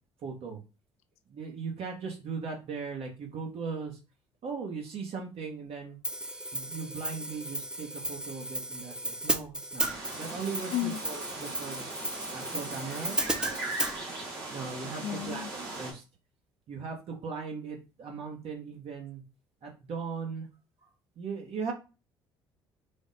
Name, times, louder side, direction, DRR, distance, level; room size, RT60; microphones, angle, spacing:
voice 1, 0.2-0.6 1.3-3.9 4.4-6.0 6.5-9.9 10.1-11.9 12.3-13.6 14.5-15.5 15.8-16.0 16.7-19.2 19.6-20.5 21.2-21.7, right 5 dB, 55° right, 1 dB, 1.0 m, -38 dB
Hi-hat, 6.0-13.9, right 1 dB, 5° right, 0.4 m, -35 dB
sound 1, 9.8-15.9, right 2 dB, 90° right, 1.0 m, -39 dB
voice 2, 10.7-11.0 15.0-15.5, left 14 dB, 65° left, 10 dB, 0.4 m, -32 dB
3.4 x 2.0 x 4.0 m, 0.31 s
hypercardioid pair, 60°, 12 cm